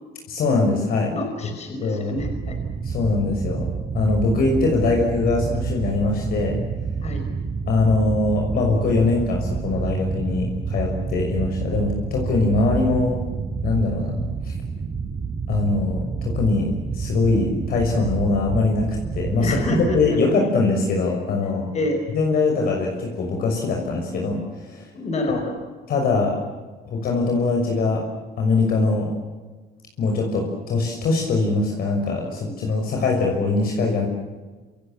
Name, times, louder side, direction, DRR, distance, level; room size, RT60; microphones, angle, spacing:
voice 1, 0.3-1.1 1.8-2.2 2.8-3.7 3.9-6.6 7.7-13.2 13.6-14.5 15.5-19.6 19.9-21.7 22.1-24.9 25.3-25.4 25.9-26.4 26.8-28.0 28.4-29.1 30.0-34.1, left 3 dB, 60° left, 1 dB, 6.3 m, -22 dB
voice 2, 1.1-2.6 7.0-7.2 19.4-20.2 21.7-22.0 24.9-25.6, left 1 dB, 40° left, 5 dB, 5.4 m, -27 dB
sound 1, 2.1-20.1, right 5 dB, 30° right, 3.3 m, -29 dB
28.0 x 27.0 x 7.7 m, 1.3 s
cardioid pair, 110°, 17 cm